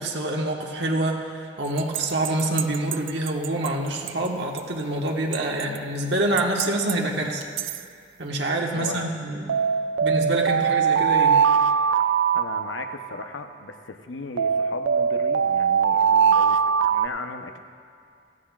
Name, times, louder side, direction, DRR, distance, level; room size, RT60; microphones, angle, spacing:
voice 1, 0.0-7.4 8.2-9.5 10.0-11.4, right 1 dB, 65° right, 0 dB, 1.4 m, -26 dB
sound 1, 1.8-3.7 4.1-4.2 4.6-4.7 5.3-5.8 6.4-6.9 7.4-7.8 9.5-13.3 14.4-17.1, right 7 dB, 80° right, 0.3 m, -21 dB
voice 2, 8.7-9.1 12.3-16.6 16.9-17.6, left 3 dB, 85° left, 6 dB, 0.8 m, -37 dB
17.5 x 15.0 x 2.4 m, 2.3 s
head